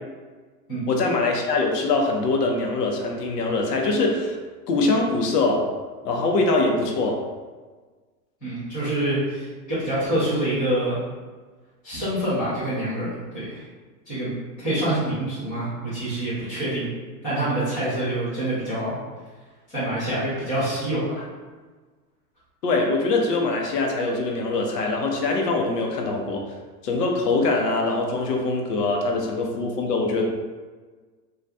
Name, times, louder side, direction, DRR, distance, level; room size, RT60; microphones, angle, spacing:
voice 1, 0.9-4.4 4.7-5.6 6.0-7.2 22.6-26.4 26.8-30.2, left 3 dB, 75° left, 1 dB, 0.8 m, -23 dB
voice 2, 8.4-11.0 11.8-13.1 13.3-13.6 14.1-14.3 14.6-16.9 17.2-19.0 19.7-21.2, right 1 dB, 5° left, -16 dB, 0.4 m, -26 dB
2.7 x 2.4 x 3.2 m, 1.4 s
supercardioid pair, 160°, 48 cm